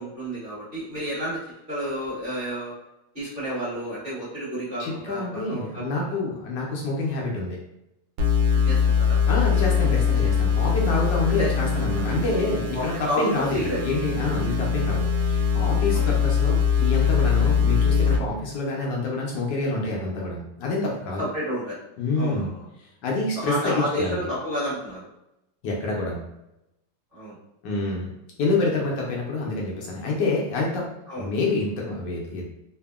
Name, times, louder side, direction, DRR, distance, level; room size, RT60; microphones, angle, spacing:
voice 1, 0.0-1.4 1.7-2.7 3.1-6.2 8.5-9.2 11.4-11.5 12.7-13.8 15.9-16.1 21.2-21.8 22.2-22.6 23.3-25.1 27.1-27.4 31.1-31.3, equal, 35° right, -10 dB, 1.1 m, -30 dB
voice 2, 4.8-7.6 9.3-21.3 22.0-22.5 23.0-24.2 25.6-26.2 27.6-28.1 28.4-30.9 31.2-32.4, left 3 dB, 75° left, -2 dB, 1.2 m, -27 dB
sound 1, 8.2-18.2, left 6 dB, 85° right, 1.3 m, -22 dB
3.4 x 2.0 x 2.2 m, 0.88 s
omnidirectional pair, 2.1 m